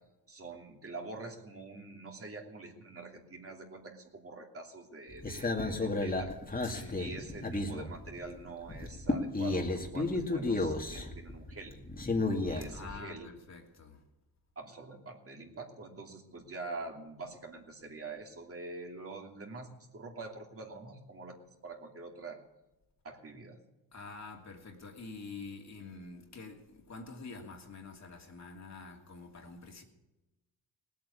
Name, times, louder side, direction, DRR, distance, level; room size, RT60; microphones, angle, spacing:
voice 1, 0.3-6.3 7.0-11.8 12.5-13.3 14.6-21.4 21.6-22.4 23.0-23.6, right 3 dB, 35° right, 2.8 m, -45 dB
sound 1, 5.1-8.4 8.7-12.9, left 2 dB, 20° left, 2.3 m, -33 dB
voice 2, 6.6-7.1 12.6-14.0 23.9-29.8, left 4 dB, 40° left, 2.8 m, -47 dB
18.0 x 8.6 x 8.4 m
cardioid pair, 95°, 40 cm